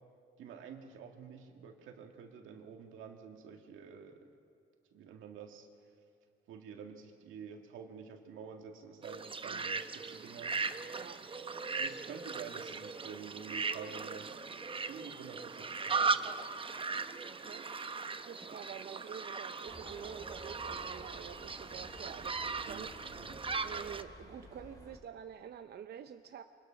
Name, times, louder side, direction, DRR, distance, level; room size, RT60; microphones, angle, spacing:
voice 1, 0.4-4.3 4.9-5.7 6.5-10.6 11.4-14.4 14.9-16.1 22.6-23.4, right 6 dB, 85° right, 3 dB, 2.1 m, -49 dB
sound 1, 9.0-24.0, right 4 dB, 25° right, 0.8 m, -38 dB
voice 2, 11.0-11.3 17.3-17.7 18.3-22.9 23.6-26.4, right 8 dB, 55° right, 8 dB, 0.7 m, -48 dB
sound 2, 19.7-25.0, left 1 dB, 20° left, 3.2 m, -53 dB
25.0 x 20.5 x 5.8 m, 2.6 s
cardioid pair, 90°, 20 cm